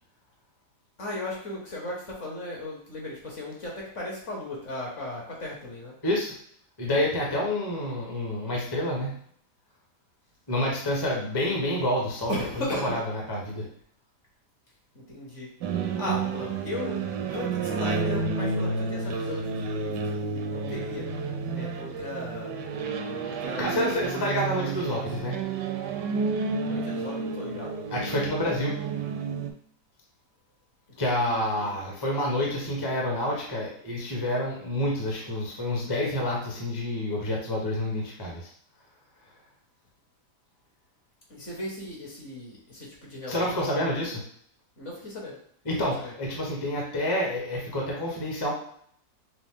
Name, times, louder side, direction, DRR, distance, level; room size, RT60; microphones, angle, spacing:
voice 1, 1.0-5.9 12.3-13.0 14.9-15.5 16.0-21.1 21.5-22.5 23.2-24.0 24.5-25.3 26.6-28.3 31.0-32.0 41.3-43.5 44.8-45.4 46.0-46.1, left 1 dB, 50° left, -3 dB, 1.5 m, -37 dB
voice 2, 6.0-6.3 6.8-9.2 10.5-12.3 12.8-13.0 13.3-13.6 23.2-25.4 27.9-28.8 31.0-38.5 43.3-44.2 45.7-48.5, left 1 dB, 20° left, -2 dB, 0.7 m, -28 dB
sound 1, 15.6-29.5, right 4 dB, 80° right, 1.2 m, -31 dB
6.0 x 2.0 x 3.6 m, 0.63 s
omnidirectional pair, 1.8 m